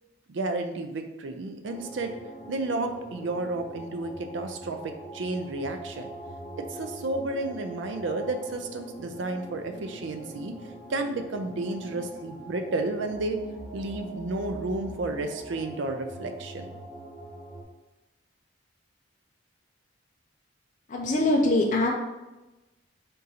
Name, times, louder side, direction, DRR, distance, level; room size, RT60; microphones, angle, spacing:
voice 1, 0.3-2.1 2.5-6.1 6.6-10.5 10.9-13.4 13.7-16.7, right 2 dB, 75° right, 6 dB, 0.5 m, -32 dB
sound 1, 1.6-17.6, right 1 dB, ahead, 1.3 m, -42 dB
voice 2, 20.9-21.9, left 2 dB, 40° left, -1 dB, 0.5 m, -23 dB
3.7 x 2.8 x 4.0 m, 1.0 s
head